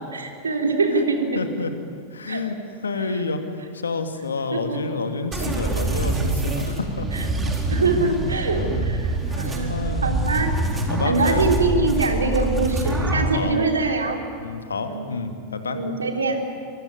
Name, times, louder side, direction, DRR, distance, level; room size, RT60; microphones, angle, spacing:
voice 1, 0.1-1.4 2.3-2.4 4.5-4.8 7.1-7.3 7.7-10.5 11.0-14.2 14.8-15.2 15.7-16.4, right 3 dB, 75° right, 3 dB, 3.5 m, -24 dB
voice 2, 1.3-1.7 2.1-3.4 3.7-7.5 8.4-9.0 9.2-10.2 10.9-11.4 12.8-13.6 14.4-15.8, left 4 dB, 75° left, 7 dB, 2.4 m, -29 dB
sound 1, 5.3-13.3, right 2 dB, 15° right, 4.3 m, -25 dB
24.5 x 24.5 x 9.5 m, 2.2 s
figure-of-eight pair, 90°, 0 cm